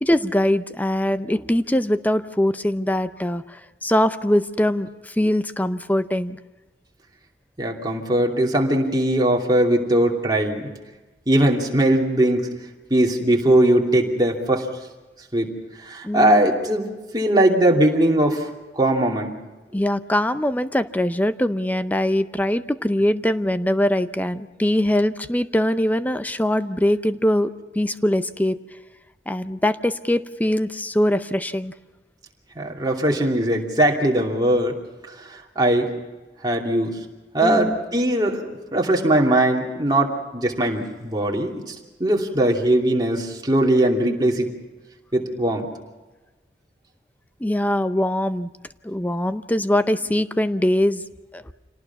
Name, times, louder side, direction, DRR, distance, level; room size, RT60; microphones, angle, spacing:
voice 1, 0.0-6.4 16.0-16.4 19.7-28.6 29.3-31.7 37.4-37.8 47.4-48.5 48.8-51.0 51.3-51.4, left 1 dB, 10° left, 12 dB, 0.6 m, -22 dB
voice 2, 7.6-10.7 11.3-12.5 12.9-14.7 15.3-15.5 15.8-16.9 17.1-18.5 18.7-19.3 32.6-34.8 35.3-35.9 36.4-36.9 37.3-41.7 42.0-44.5 45.1-45.7, right 1 dB, 25° right, 0 dB, 2.7 m, -20 dB
27.0 x 18.5 x 6.0 m, 1.2 s
head